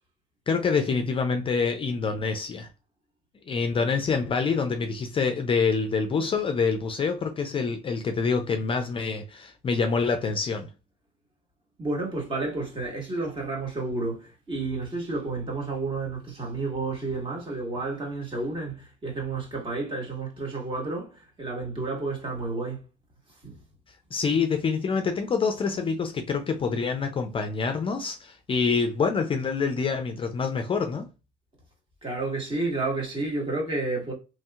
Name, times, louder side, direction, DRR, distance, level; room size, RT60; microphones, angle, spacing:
voice 1, 0.5-2.7 3.5-10.7 24.1-31.1, left 5 dB, 30° left, 0.4 m, -26 dB
voice 2, 11.8-22.8 23.4-23.5 32.0-34.1, right 3 dB, 30° right, 1.6 m, -31 dB
3.1 x 2.7 x 2.3 m
cardioid pair, 110°, 17 cm